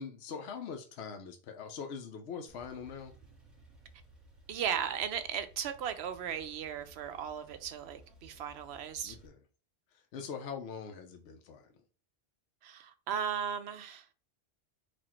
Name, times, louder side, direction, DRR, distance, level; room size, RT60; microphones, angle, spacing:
voice 1, 0.0-3.1 9.0-9.4 10.1-11.7, left 6 dB, 80° left, 0.9 m, -42 dB
Male speech man speaking / Car / Idling, 2.5-9.3, right 1 dB, ahead, 1.2 m, -58 dB
voice 2, 4.5-9.2 12.6-14.1, right 8 dB, 75° right, 0.9 m, -36 dB
4.2 x 2.5 x 4.3 m
omnidirectional pair, 1.1 m